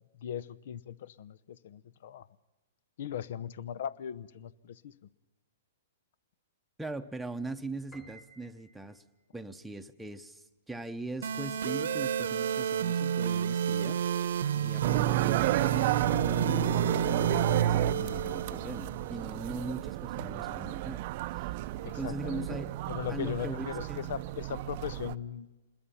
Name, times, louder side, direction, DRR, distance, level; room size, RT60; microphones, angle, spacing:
voice 1, 0.2-2.3 3.0-4.9 20.2-20.6 21.8-22.6 22.9-25.5, left 9 dB, 60° left, 0.8 m, -39 dB
voice 2, 6.8-9.0 9.3-14.3 14.5-22.7 23.1-24.1, right 2 dB, 5° right, 0.9 m, -41 dB
Piano, 7.9-9.2, right 1 dB, 20° left, 3.3 m, -55 dB
sound 1, 11.2-19.2, right 7 dB, 75° right, 1.0 m, -31 dB
sound 2, 14.8-25.2, right 14 dB, 45° right, 0.6 m, -31 dB
26.5 x 21.0 x 5.7 m
hypercardioid pair, 130°, 0 cm